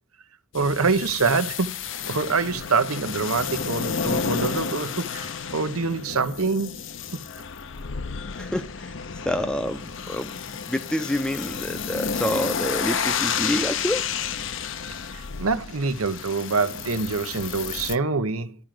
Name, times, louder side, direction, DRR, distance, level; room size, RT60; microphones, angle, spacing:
sound 1, 0.5-18.0, left 6 dB, 60° left, 0.7 m, -31 dB
voice 1, 0.5-1.8 2.1-6.8 15.1-18.6, right 4 dB, 85° right, 1.0 m, -25 dB
voice 2, 8.4-8.9 9.2-10.4 10.7-14.0, equal, 5° left, 0.6 m, -27 dB
12.0 x 5.1 x 7.6 m
head